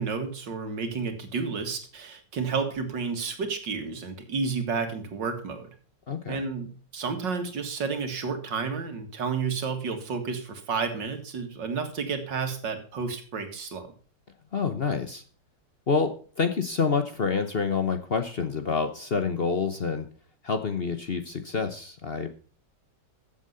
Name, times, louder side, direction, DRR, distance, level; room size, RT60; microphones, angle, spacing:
voice 1, 0.0-5.7 6.3-13.9, right 5 dB, 85° right, 6 dB, 2.5 m, -31 dB
voice 2, 6.1-6.4 14.5-15.2 15.9-20.1 20.4-22.3, left 5 dB, 45° left, 7 dB, 0.9 m, -27 dB
14.0 x 7.6 x 5.5 m, 0.40 s
omnidirectional pair, 1.9 m